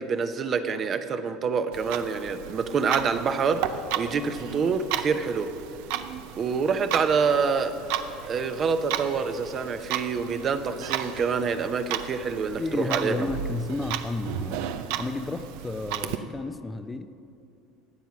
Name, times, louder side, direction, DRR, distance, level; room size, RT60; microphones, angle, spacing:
voice 1, 0.0-3.6 4.0-5.5 6.4-7.8 8.2-13.3, right 5 dB, 40° right, 9 dB, 0.8 m, -26 dB
Clock, 1.7-16.2, right 10 dB, 75° right, 0.6 m, -34 dB
voice 2, 12.6-14.7 14.9-17.1, left 3 dB, 15° left, 10 dB, 0.5 m, -32 dB
13.5 x 8.2 x 6.0 m, 2.6 s
supercardioid pair, 90°, 0 cm